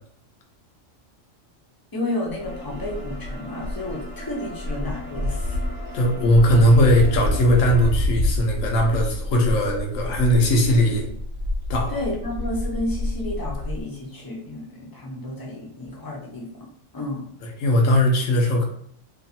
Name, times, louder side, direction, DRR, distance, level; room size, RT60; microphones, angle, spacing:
voice 1, 1.9-5.6 11.9-16.5 16.9-17.3, left 2 dB, 30° left, -3 dB, 0.4 m, -31 dB
sound 1, 2.3-13.8, left 1 dB, 50° right, 1.0 m, -28 dB
sound 2, 2.4-7.9, equal, 35° right, 0.7 m, -40 dB
voice 2, 5.9-11.1 11.7-12.0 17.6-18.6, equal, 85° left, 1 dB, 1.1 m, -19 dB
3.0 x 2.3 x 2.7 m, 0.65 s
omnidirectional pair, 1.3 m